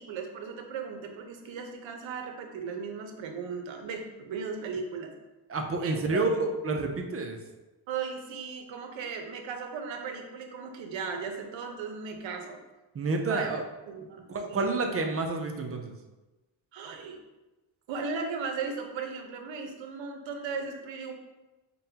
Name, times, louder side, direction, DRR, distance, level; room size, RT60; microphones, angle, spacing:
voice 1, 0.0-5.1 5.8-6.5 7.9-12.6 13.2-13.5 13.9-14.8 16.7-17.2 17.9-21.1, right 5 dB, 65° right, 4 dB, 0.8 m, -37 dB
voice 2, 5.5-7.4 12.9-13.6 14.3-15.9, right 3 dB, 30° right, 4 dB, 0.5 m, -29 dB
5.3 x 2.2 x 2.8 m, 1.1 s
cardioid pair, 85°, 49 cm